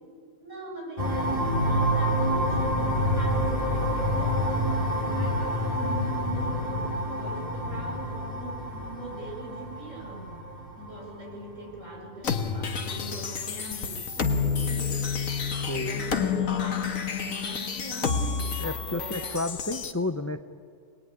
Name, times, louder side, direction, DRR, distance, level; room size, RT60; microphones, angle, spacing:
voice 1, 0.4-10.4 10.8-19.5, right 1 dB, 70° right, -2 dB, 6.4 m, -41 dB
sound 1, 1.0-11.5, equal, 25° right, 3.2 m, -28 dB
sound 2, 12.2-19.9, left 6 dB, 85° left, 1.7 m, -29 dB
voice 2, 15.7-16.0 18.6-20.4, left 2 dB, 15° left, 9 dB, 0.5 m, -31 dB
25.5 x 19.5 x 9.5 m, 2.1 s
omnidirectional pair, 1.4 m